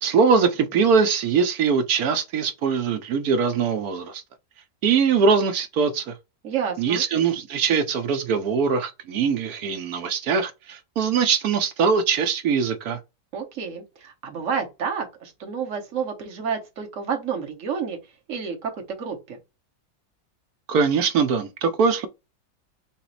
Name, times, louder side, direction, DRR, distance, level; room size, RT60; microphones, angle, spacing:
voice 1, 0.0-4.2 4.8-6.2 6.8-13.0 20.7-22.1, right 5 dB, 65° right, 1.0 m, -22 dB
voice 2, 6.4-7.0 13.3-18.0 18.3-19.4, right 6 dB, 50° right, 1.3 m, -30 dB
5.9 x 2.0 x 3.9 m
omnidirectional pair, 1.9 m